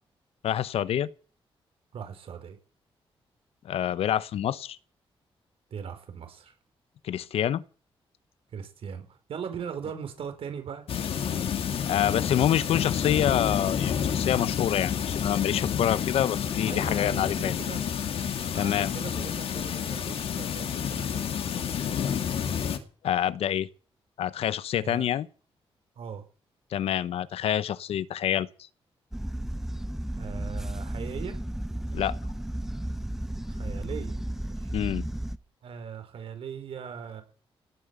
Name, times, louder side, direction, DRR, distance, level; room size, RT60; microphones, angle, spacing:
voice 1, 0.4-1.1 3.6-4.8 7.0-7.6 11.8-17.5 18.6-18.9 23.0-23.7 24.2-25.3 26.7-28.5 31.9-32.2 34.7-35.0, left 10 dB, 90° left, 0.9 m, -27 dB
voice 2, 1.9-2.6 5.7-6.5 8.5-10.8 16.7-17.8 18.4-21.7 24.7-25.1 25.9-26.2 30.2-31.4 33.5-34.7 35.6-37.2, right 7 dB, 70° right, 4.9 m, -40 dB
sound 1, 10.9-22.8, left 8 dB, 75° left, 2.3 m, -29 dB
sound 2, 29.1-35.4, right 1 dB, 5° right, 0.7 m, -33 dB
18.0 x 9.0 x 8.3 m
wide cardioid pair, 125°, 10 cm